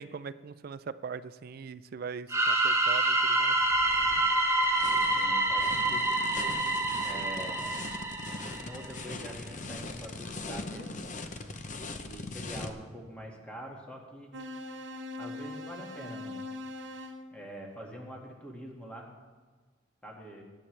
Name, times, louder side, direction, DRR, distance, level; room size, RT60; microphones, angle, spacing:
voice 1, 0.0-3.6, right 5 dB, 50° right, 13 dB, 0.4 m, -41 dB
sound 1, 2.3-8.9, right 2 dB, 15° right, 1.0 m, -27 dB
sound 2, 3.6-12.7, left 3 dB, 40° left, 0.8 m, -41 dB
voice 2, 5.2-6.1 7.0-7.7 8.6-11.1 12.0-14.3 15.2-16.4 17.3-19.1 20.0-20.4, equal, 5° left, -1 dB, 1.9 m, -44 dB
sound 3, 14.3-17.2, left 2 dB, 75° right, 1.0 m, -41 dB
19.5 x 8.9 x 3.3 m, 1.4 s
head